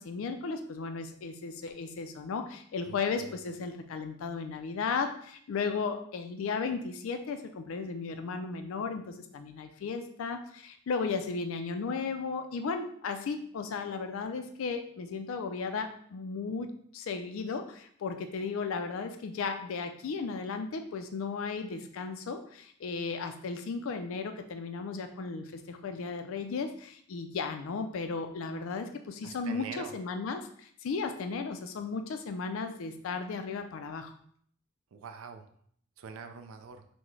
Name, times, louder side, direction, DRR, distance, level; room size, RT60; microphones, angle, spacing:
voice 1, 0.0-34.1, left 4 dB, 65° left, 7 dB, 0.4 m, -35 dB
voice 2, 2.8-3.3 29.2-30.0 34.9-35.5 36.0-36.9, right 5 dB, 75° right, 7 dB, 0.4 m, -44 dB
5.9 x 2.1 x 3.1 m, 0.62 s
head